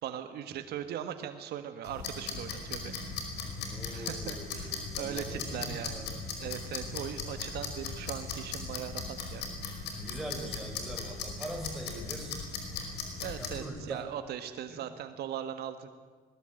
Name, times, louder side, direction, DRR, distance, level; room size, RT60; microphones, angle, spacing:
voice 1, 0.0-3.0 3.9-6.0 6.4-9.5 13.2-15.9, right 10 dB, 70° right, 8 dB, 1.6 m, -39 dB
sound 1, 1.8-13.6, left 4 dB, 80° left, 5.3 m, -38 dB
voice 2, 3.7-6.2 9.9-12.4 13.4-14.1 14.7-14.8, right 1 dB, ahead, 0 dB, 5.9 m, -42 dB
21.0 x 20.0 x 9.1 m, 1.4 s
cardioid pair, 110°, 17 cm